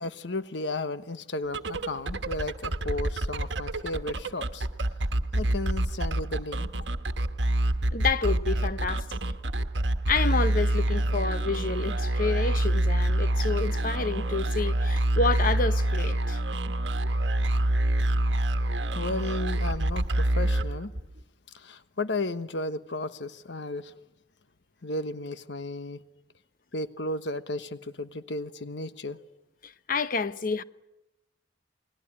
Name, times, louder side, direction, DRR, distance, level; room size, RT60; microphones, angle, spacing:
voice 1, 0.0-4.7 5.3-6.7 18.9-20.9 21.5-23.9 24.8-26.0 26.7-29.2, left 2 dB, 85° left, 1.2 m, -34 dB
sound 1, 1.4-21.2, right 1 dB, 85° right, 1.3 m, -27 dB
voice 2, 7.9-9.2 10.1-16.4 29.6-30.6, left 4 dB, 50° left, 1.0 m, -29 dB
29.0 x 20.0 x 9.9 m
head